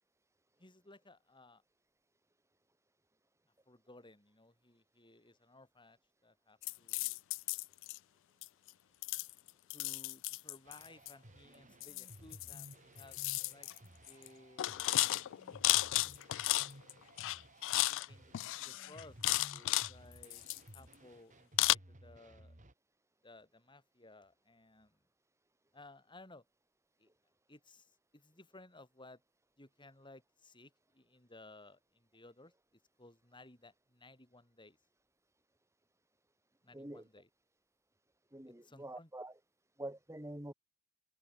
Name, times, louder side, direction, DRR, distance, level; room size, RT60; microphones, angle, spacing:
voice 1, 0.6-1.6 3.7-7.2 9.7-13.2 13.5-13.7 14.1-15.1 17.9-20.4 20.7-22.6 23.2-25.0 25.7-26.4 27.0-27.1 27.5-29.2 29.6-34.8 36.6-37.3 38.5-39.1, left 2 dB, 25° left, 6.1 m, -59 dB
sound 1, 6.6-8.0 8.4-8.7 9.0-11.1 11.8-12.7 13.0-13.8 14.1-14.3 14.6-16.9 17.2-18.1 18.3-19.9 20.2-20.9 21.6-21.7, left 18 dB, 60° left, 0.3 m, -34 dB
sound 2, 10.7-22.7, right 1 dB, 35° right, 3.1 m, -57 dB
voice 2, 36.7-37.1 38.3-39.3 39.8-40.5, right 1 dB, 15° right, 2.9 m, -46 dB
head